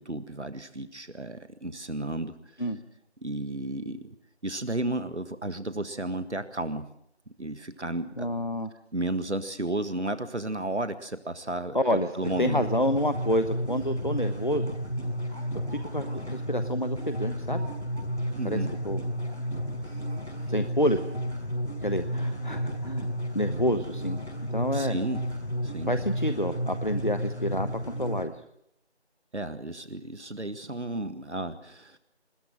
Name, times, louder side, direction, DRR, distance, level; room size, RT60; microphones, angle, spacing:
voice 1, 0.0-2.4 3.2-4.2 4.4-6.9 7.4-8.3 8.9-12.7 18.3-18.7 24.7-25.2 25.6-25.9 29.3-32.0, right 1 dB, 85° right, 11 dB, 1.8 m, -33 dB
Speech, 7.1-7.2 7.6-7.7 8.0-8.1 8.5-8.6 9.1-9.2 9.5-9.8 10.0-10.1 10.9-11.1 11.9-14.0 14.3-14.4 14.8-18.4 18.6-18.9 19.1-21.4 22.0-22.1 22.4-22.5, right 1 dB, 65° left, 5.4 m, -55 dB
voice 2, 8.2-8.7 11.7-12.1 12.4-14.7 15.7-17.6 18.4-18.6 18.8-19.0 20.5-21.0 21.8-23.1 23.3-24.2 24.5-25.0 25.9-27.7 28.0-28.3, equal, 45° left, 10 dB, 1.1 m, -28 dB
sound 1, 12.2-28.2, equal, 80° left, 5.3 m, -32 dB
21.0 x 20.0 x 7.7 m, 0.74 s
figure-of-eight pair, 180°, 33 cm